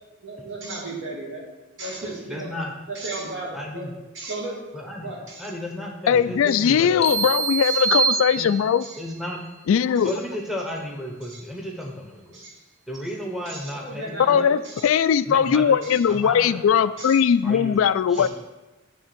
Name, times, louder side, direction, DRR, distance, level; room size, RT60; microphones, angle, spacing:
voice 1, 0.2-1.4 1.8-2.5 2.9-3.9 4.1-4.6 5.0-5.5 6.5-6.7 7.6-7.8 8.8-9.0 10.0-10.1 11.2-11.4 12.3-12.6 13.5-14.9 15.8-16.0 17.0-17.2 18.1-18.3, right 2 dB, 65° right, -3 dB, 2.2 m, -35 dB
voice 2, 2.3-2.7 3.5-3.9 4.7-7.1 8.4-8.5 9.0-9.4 10.0-12.4 12.9-14.5 15.3-15.8 16.1-16.9 17.4-17.8 18.1-18.3, equal, ahead, -1 dB, 0.9 m, -33 dB
voice 3, 6.1-8.8 9.7-10.2 14.3-18.3, left 7 dB, 80° left, 15 dB, 0.3 m, -20 dB
sound 1, 7.0-9.0, right 5 dB, 30° left, 0.7 m, -24 dB
9.8 x 3.6 x 5.9 m, 1.1 s
head